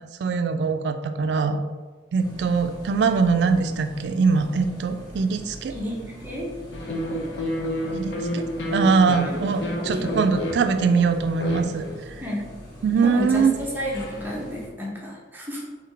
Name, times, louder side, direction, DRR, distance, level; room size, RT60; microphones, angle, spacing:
voice 1, 0.2-1.6 2.1-5.7 7.9-8.4 8.7-12.2 12.8-13.6, right 5 dB, 70° right, 8 dB, 0.3 m, -22 dB
sound 1, 2.2-14.7, equal, 20° left, 1.1 m, -42 dB
voice 2, 5.7-6.5 9.3-10.1 12.2-12.4 13.0-15.7, equal, 10° right, -4 dB, 0.8 m, -32 dB
sound 2, 6.7-12.0, equal, 85° left, 0.7 m, -30 dB
3.8 x 3.0 x 3.3 m, 1.4 s
head